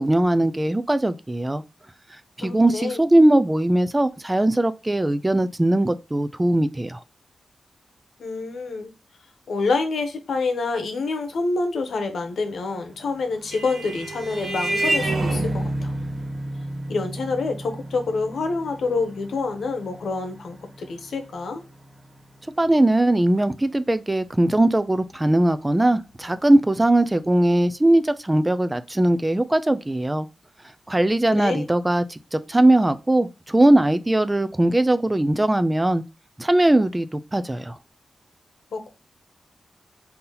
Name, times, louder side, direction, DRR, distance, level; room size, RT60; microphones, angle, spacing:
voice 1, 0.0-1.6 2.4-7.0 22.6-30.3 30.9-36.0 36.4-37.8, right 1 dB, 15° right, 0.3 m, -20 dB
voice 2, 2.4-3.0 8.2-8.9 9.5-15.9 16.9-21.6 31.4-31.7 38.7-38.9, left 3 dB, 85° left, 0.9 m, -27 dB
Vehicle horn car horn honking, 12.9-21.9, right 2 dB, 45° right, 1.4 m, -30 dB
3.9 x 2.8 x 3.9 m
wide cardioid pair, 115°, 0 cm